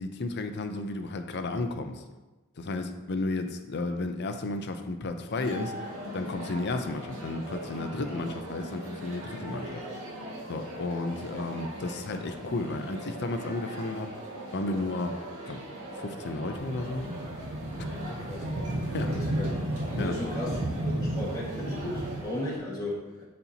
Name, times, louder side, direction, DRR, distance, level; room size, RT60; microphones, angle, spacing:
voice 1, 0.0-2.0 2.6-9.8 10.5-14.1 14.5-15.2 15.5-15.6 15.9-17.1 18.9-19.1 20.0-20.1, left 2 dB, 50° left, 7 dB, 0.6 m, -33 dB
sound 1, 5.3-22.6, right 1 dB, 80° right, 1.9 m, -40 dB
sound 2, 16.5-22.2, right 1 dB, 45° right, 0.8 m, -33 dB
voice 2, 18.9-19.5 19.9-23.2, left 1 dB, 15° left, -7 dB, 1.7 m, -35 dB
11.0 x 4.3 x 2.8 m, 1.1 s
head